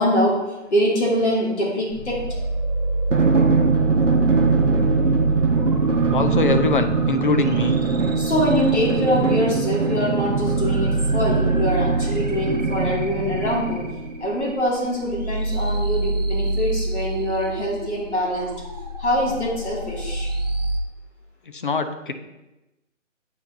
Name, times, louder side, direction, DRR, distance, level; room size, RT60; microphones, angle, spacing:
voice 1, 0.0-2.3 8.2-13.8 14.2-18.6 19.0-20.3, equal, 60° left, -4 dB, 2.1 m, -24 dB
sound 1, 1.9-20.8, right 1 dB, 35° right, 0.5 m, -27 dB
Drum, 3.1-14.1, right 5 dB, 70° right, 0.9 m, -22 dB
voice 2, 6.1-7.7 21.5-22.1, left 4 dB, 40° left, 8 dB, 0.5 m, -23 dB
8.7 x 4.3 x 2.6 m, 1.0 s
figure-of-eight pair, 145°, 38 cm